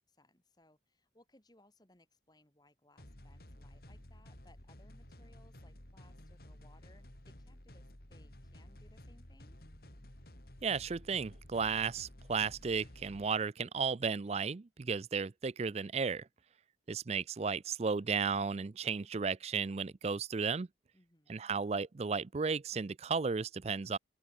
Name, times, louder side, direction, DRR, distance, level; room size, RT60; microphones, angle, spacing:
voice 1, 0.1-9.6 20.9-21.5, left 1 dB, 25° left, 3.3 m, -66 dB
sound 1, 3.0-13.3, left 1 dB, 55° left, 3.3 m, -54 dB
voice 2, 10.6-16.3 16.9-20.7 21.3-24.0, right 5 dB, 35° right, 0.4 m, -34 dB
open air
head